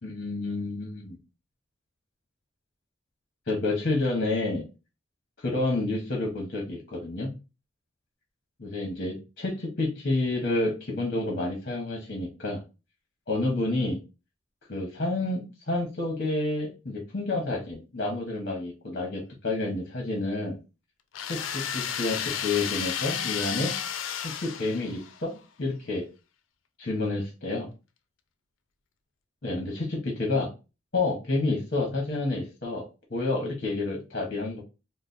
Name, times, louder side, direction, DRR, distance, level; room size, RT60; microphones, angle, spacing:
voice 1, 0.0-1.2 3.5-4.6 5.4-7.3 8.6-12.6 13.3-14.0 14.7-20.6 21.3-23.7 24.2-26.1 26.8-27.7 29.4-30.5 30.9-34.6, left 2 dB, 50° left, 0 dB, 0.9 m, -29 dB
sound 1, 21.1-25.2, left 9 dB, 85° left, 0.4 m, -32 dB
3.1 x 2.0 x 3.9 m, 0.29 s
head